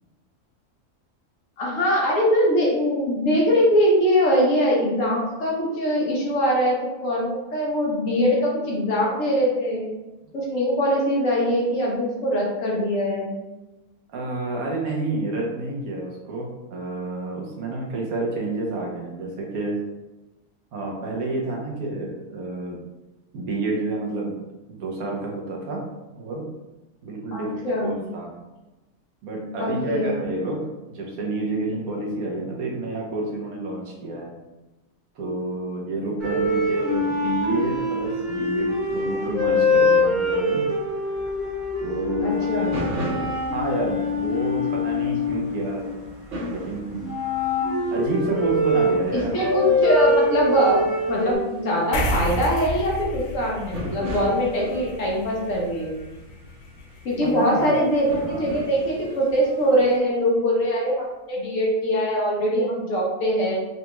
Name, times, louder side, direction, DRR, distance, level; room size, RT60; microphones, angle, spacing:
voice 1, 1.6-9.9 10.3-13.3 27.3-27.9 29.6-30.2 42.2-42.8 49.1-50.8 51.1-55.9 57.0-63.6, equal, 65° left, -3 dB, 1.2 m, -22 dB
voice 2, 14.1-19.8 20.7-22.8 23.3-24.3 24.7-26.5 27.0-28.4 29.2-34.4 35.2-40.7 41.8-42.7 43.5-45.9 46.4-47.1 47.9-49.4 49.6-49.8 57.2-57.7 58.2-58.6, right 2 dB, 80° right, -1 dB, 1.3 m, -29 dB
sound 1, 36.2-46.4 47.0-51.3, left 2 dB, ahead, 0.7 m, -24 dB
sound 2, 42.3-60.0, equal, 60° right, 1.2 m, -38 dB
sound 3, 51.9-58.7, equal, 85° left, 1.1 m, -33 dB
4.0 x 2.3 x 2.9 m, 1.1 s
omnidirectional pair, 1.5 m